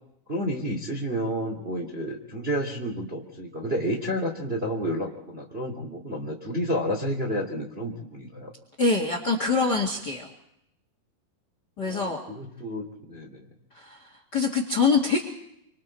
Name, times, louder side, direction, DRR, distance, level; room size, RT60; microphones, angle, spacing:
voice 1, 0.3-8.5 11.9-13.5, equal, 20° right, 1 dB, 1.9 m, -30 dB
voice 2, 8.8-10.3 11.8-12.2 13.7-15.2, left 4 dB, 35° left, 4 dB, 1.9 m, -24 dB
27.0 x 25.5 x 4.5 m, 0.79 s
omnidirectional pair, 4.4 m